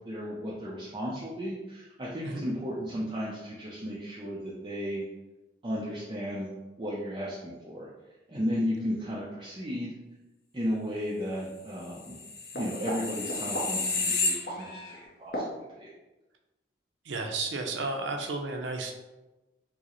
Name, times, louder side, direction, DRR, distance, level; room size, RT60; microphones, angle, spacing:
voice 1, 0.1-5.0 5.6-6.5 6.8-7.9 8.3-9.9 10.5-12.2 12.5-15.4 15.7-15.9, equal, 25° right, -7 dB, 0.4 m, -34 dB
sound 1, 12.0-15.0 15.3-15.5, left 3 dB, 55° left, 0.6 m, -31 dB
voice 2, 17.1-18.9, right 3 dB, 80° right, 4 dB, 0.5 m, -32 dB
4.6 x 2.0 x 2.9 m, 1.1 s
head